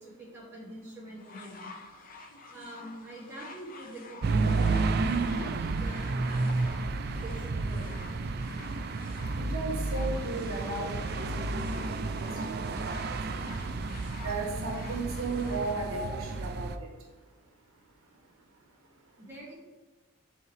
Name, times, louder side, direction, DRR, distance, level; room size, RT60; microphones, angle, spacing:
voice 1, 0.0-1.7 2.5-6.5 7.2-7.9 9.9-10.0 10.6-10.8 14.6-14.7 15.3-16.2 19.2-19.5, equal, 10° right, -7 dB, 2.2 m, -45 dB
sound 1, 1.2-15.8 16.6-16.7, left 3 dB, 40° left, 0.7 m, -49 dB
sound 2, 4.2-16.8, right 3 dB, 50° right, 0.3 m, -31 dB
voice 2, 9.4-11.6 12.8-13.2 14.2-16.7, right 3 dB, 70° right, 0 dB, 1.2 m, -35 dB
11.0 x 3.7 x 3.3 m, 1.3 s
head